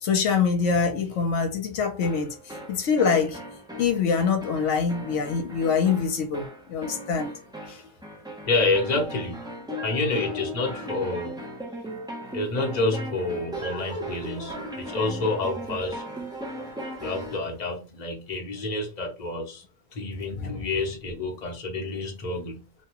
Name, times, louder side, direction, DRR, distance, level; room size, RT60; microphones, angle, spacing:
voice 1, 0.0-2.3 2.7-3.4 3.8-7.3 7.7-7.8 20.4-20.6, left 6 dB, 70° left, 1.1 m, -24 dB
sound 1, 2.0-17.5, equal, 5° right, 0.5 m, -37 dB
voice 2, 8.5-9.5 9.8-11.5 12.3-16.0 17.0-19.6 19.9-22.6, left 3 dB, 40° left, 0.9 m, -28 dB
2.9 x 2.3 x 2.9 m
omnidirectional pair, 1.3 m